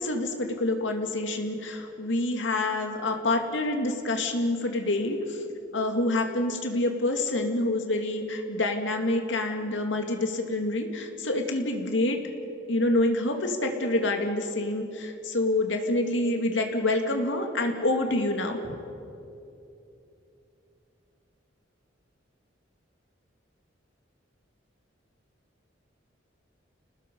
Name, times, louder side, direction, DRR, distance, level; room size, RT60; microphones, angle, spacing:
voice 1, 0.0-5.4 5.7-12.2 12.7-18.6, left 2 dB, 75° left, 4 dB, 2.3 m, -27 dB
29.0 x 19.5 x 5.5 m, 2.7 s
head